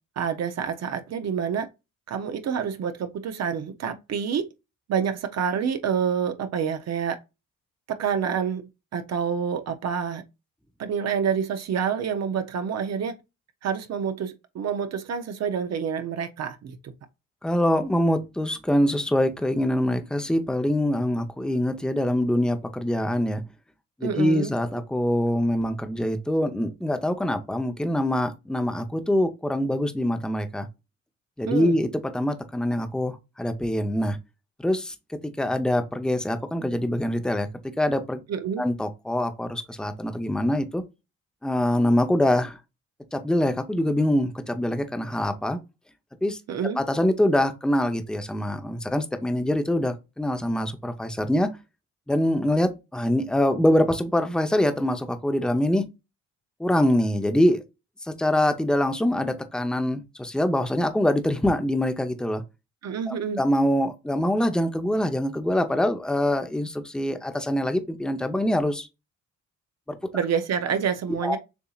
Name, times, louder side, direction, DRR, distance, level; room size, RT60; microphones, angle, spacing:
voice 1, 0.2-1.7 2.1-4.5 4.9-7.2 7.9-10.2 10.8-13.2 13.6-16.9 24.0-24.5 31.5-31.7 38.3-38.6 46.5-46.8 62.8-63.4 70.1-71.4, right 7 dB, 60° right, 0.8 m, -27 dB
voice 2, 17.4-23.4 24.0-30.7 31.4-31.9 32.1-34.2 34.6-34.9 35.4-37.5 37.8-38.2 38.6-40.8 41.4-42.6 43.1-45.6 46.2-46.4 46.8-51.5 52.1-55.8 56.6-57.6 58.1-62.4 63.1-68.9 69.9-70.0 71.2-71.4, left 1 dB, 5° left, 0.7 m, -24 dB
7.0 x 2.8 x 2.4 m
cardioid pair, 90°, 30 cm